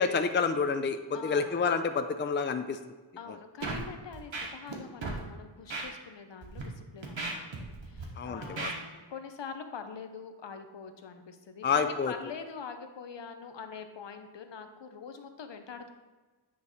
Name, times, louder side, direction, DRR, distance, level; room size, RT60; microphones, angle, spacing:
voice 1, 0.0-2.8 8.2-8.7 11.6-12.1, left 5 dB, 25° left, 8 dB, 0.4 m, -28 dB
voice 2, 1.1-1.6 3.2-7.6 7.8-15.9, left 6 dB, 65° left, 7 dB, 0.7 m, -44 dB
Scratching (performance technique), 3.6-3.8 4.1-4.7 5.0-5.2 5.7-5.8 6.4-6.6 7.0-8.0 8.4-8.7, right 3 dB, 70° right, 1.3 m, -35 dB
9.3 x 3.2 x 4.2 m, 1.3 s
cardioid pair, 40°, 47 cm